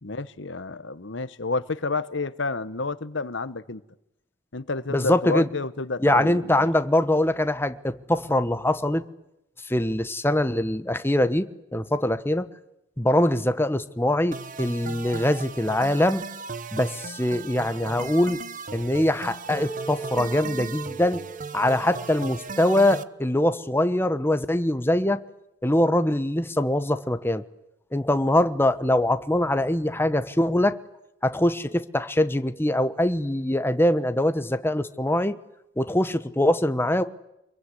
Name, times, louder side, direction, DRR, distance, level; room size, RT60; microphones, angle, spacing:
voice 1, 0.0-3.8 4.5-6.7, left 3 dB, 65° left, 1.1 m, -30 dB
voice 2, 4.9-5.5 6.0-9.0 9.7-12.4 13.0-16.2 16.7-18.4 18.7-21.2 21.5-25.2 25.6-27.4 27.9-30.7 31.2-35.4 35.8-37.0, left 1 dB, 10° left, 1.1 m, -23 dB
sound 1, 14.3-23.0, right 4 dB, 40° right, 1.0 m, -37 dB
Mallet percussion, 19.5-23.6, right 5 dB, 10° right, 2.5 m, -40 dB
26.5 x 22.5 x 9.9 m
head